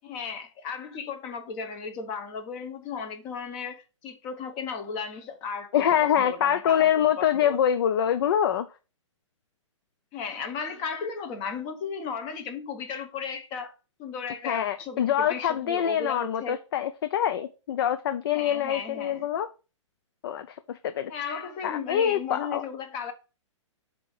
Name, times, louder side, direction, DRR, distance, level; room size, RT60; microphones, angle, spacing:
voice 1, 0.0-5.7 6.0-6.9 7.2-7.6 10.1-13.7 14.0-16.6 18.3-19.3 21.1-23.1, left 6 dB, 30° left, 1.1 m, -35 dB
voice 2, 5.7-8.7 14.4-19.5 20.2-21.1 21.6-22.6, left 9 dB, 50° left, 0.4 m, -25 dB
7.5 x 2.8 x 5.2 m
figure-of-eight pair, 115°, 16 cm